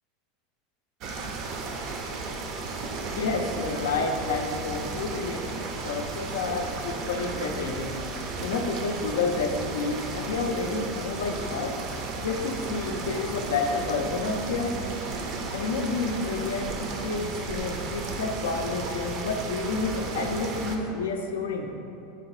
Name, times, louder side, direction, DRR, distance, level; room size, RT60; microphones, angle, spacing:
sound 1, 1.0-20.8, right 3 dB, 50° right, 0.3 m, -34 dB
voice 1, 3.1-11.8 12.2-14.8 15.5-21.7, left 4 dB, 85° left, 4 dB, 0.3 m, -30 dB
3.5 x 2.9 x 3.0 m, 2.7 s
hypercardioid pair, 110°, 0 cm